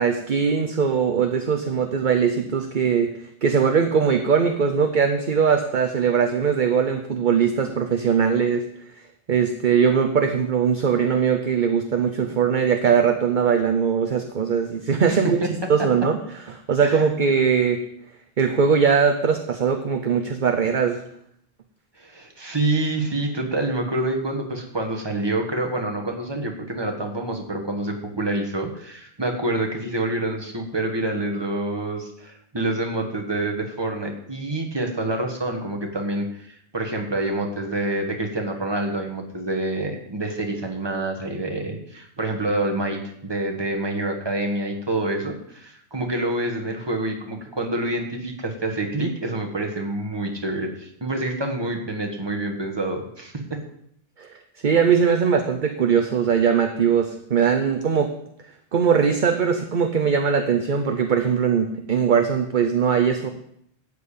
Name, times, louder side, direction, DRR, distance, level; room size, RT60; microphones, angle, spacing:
voice 1, 0.0-3.1 3.4-8.6 9.3-15.4 15.7-16.2 16.7-17.8 18.4-21.0 54.2-54.3 54.6-58.1 58.7-63.3, right 6 dB, 50° right, 5 dB, 0.9 m, -20 dB
voice 2, 15.1-15.5 16.8-17.0 22.0-53.6, right 2 dB, 25° right, 1 dB, 1.7 m, -27 dB
12.5 x 5.1 x 8.6 m, 0.70 s
omnidirectional pair, 1.1 m